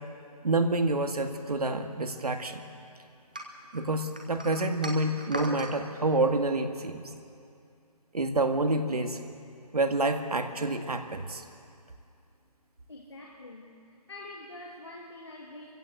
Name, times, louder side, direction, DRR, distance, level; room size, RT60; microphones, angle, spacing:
voice 1, 0.4-2.6 3.7-7.0 8.1-9.2 9.7-11.4, right 2 dB, 70° right, 6 dB, 1.9 m, -28 dB
sound 1, 3.3-5.7, right 1 dB, 15° right, 0.7 m, -38 dB
voice 2, 12.9-15.7, left 2 dB, 40° left, 0 dB, 1.9 m, -45 dB
24.0 x 15.5 x 7.9 m, 2.4 s
hypercardioid pair, 180°, 20 cm